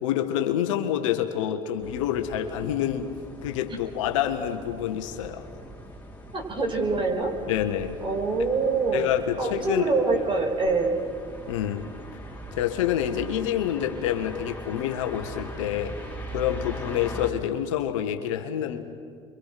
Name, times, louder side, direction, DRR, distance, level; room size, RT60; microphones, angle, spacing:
voice 1, 0.0-3.1 3.4-5.5 7.5-8.0 8.9-9.8 11.5-11.8 12.6-16.0 16.3-18.8, left 10 dB, 80° left, 6 dB, 1.8 m, -27 dB
sound 1, 1.8-17.3, equal, 10° left, 4.6 m, -41 dB
voice 2, 6.3-7.3 8.0-9.1 9.4-11.0, right 3 dB, 30° right, 2 dB, 5.8 m, -25 dB
29.5 x 24.5 x 6.1 m, 2.2 s
hypercardioid pair, 70°, 16 cm